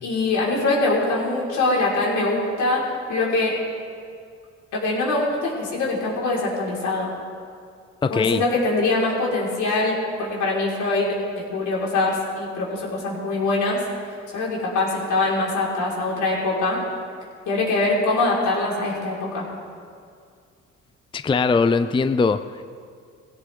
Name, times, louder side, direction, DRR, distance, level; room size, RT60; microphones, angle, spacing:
voice 1, 0.0-2.8 3.1-3.6 4.7-7.1 8.1-11.2 11.5-13.8 14.3-16.8 17.5-19.4, left 2 dB, 75° left, -5 dB, 5.4 m, -23 dB
voice 2, 8.0-8.4 21.1-22.7, left 4 dB, 15° left, 11 dB, 0.5 m, -21 dB
21.5 x 16.5 x 3.9 m, 2.2 s
cardioid pair, 90°, 30 cm